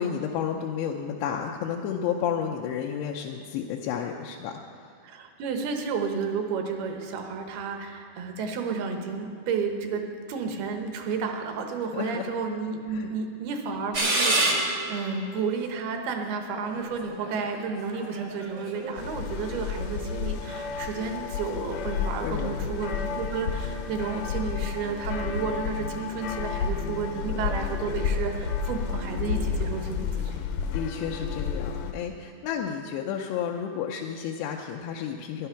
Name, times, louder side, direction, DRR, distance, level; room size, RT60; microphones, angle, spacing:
voice 1, 0.0-4.9 11.9-12.3 12.9-13.1 22.2-22.6 30.7-35.5, left 8 dB, 90° left, 0 dB, 2.8 m, -31 dB
voice 2, 5.0-30.4, right 5 dB, 75° right, 4 dB, 2.9 m, -32 dB
sound 1, 13.9-15.1 15.8-15.9 16.7-19.0, right 2 dB, 55° right, 1.1 m, -27 dB
sound 2, 19.0-31.9, left 6 dB, 75° left, 2.0 m, -31 dB
13.0 x 11.0 x 5.7 m, 2.3 s
omnidirectional pair, 4.7 m